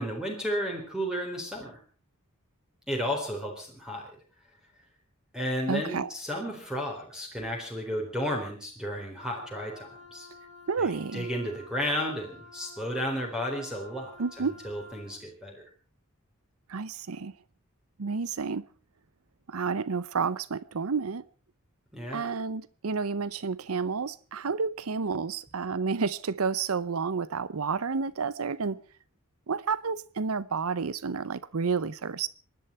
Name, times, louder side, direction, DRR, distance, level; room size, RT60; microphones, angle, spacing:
voice 1, 0.0-1.8 2.9-4.1 5.3-10.3 10.8-14.1 14.4-15.6 21.9-22.3, equal, 5° right, 4.0 m, -33 dB
voice 2, 5.7-6.1 10.7-11.3 14.2-14.5 16.7-17.3 18.0-18.6 19.5-21.2 22.1-28.8 29.5-32.3, right 5 dB, 90° right, 0.7 m, -30 dB
Wind instrument woodwind instrument, 9.2-15.2, left 2 dB, 40° right, 5.8 m, -50 dB
26.5 x 11.5 x 4.4 m
head